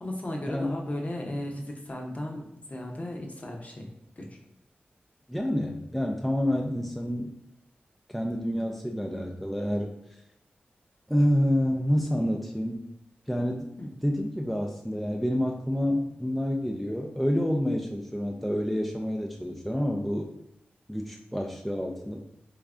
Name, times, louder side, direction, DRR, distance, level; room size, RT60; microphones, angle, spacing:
voice 1, 0.0-3.9 4.2-4.4 13.8-13.9, left 1 dB, 40° left, 0 dB, 0.7 m, -35 dB
voice 2, 5.3-7.3 8.1-10.0 11.1-12.8 13.3-13.7 14.0-20.3 20.9-22.2, equal, ahead, 1 dB, 0.4 m, -28 dB
3.5 x 3.1 x 2.5 m, 0.80 s
cardioid pair, 50°, 4 cm